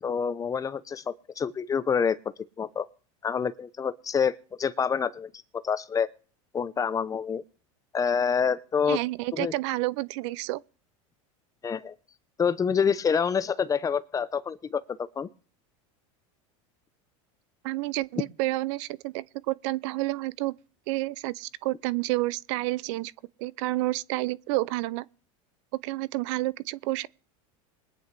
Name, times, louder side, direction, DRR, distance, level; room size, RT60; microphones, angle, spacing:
voice 1, 0.0-2.2 2.6-2.9 3.2-5.3 5.6-6.1 6.5-7.4 7.9-9.0 9.3-9.5 11.6-11.9 12.4-14.8 15.2-15.3, left 6 dB, 20° left, 0.6 m, -27 dB
voice 2, 8.9-10.6 17.6-20.5 20.9-23.1 23.4-25.1 25.8-27.1, right 19 dB, 65° right, 0.5 m, -29 dB
21.5 x 9.3 x 3.3 m
supercardioid pair, 120°, 17 cm